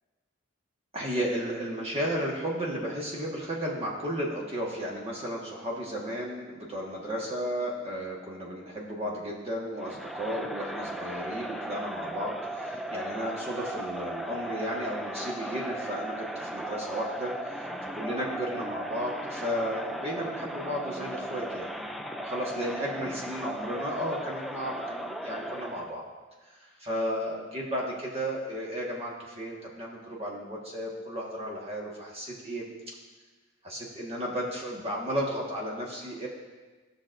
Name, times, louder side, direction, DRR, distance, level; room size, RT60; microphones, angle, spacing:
voice 1, 0.9-21.7 22.2-26.0 26.5-32.6 33.6-36.3, equal, 30° right, -3 dB, 1.4 m, -34 dB
Crowd, 9.8-26.0, right 1 dB, ahead, 0.3 m, -37 dB
16.5 x 6.3 x 2.5 m, 1.3 s
head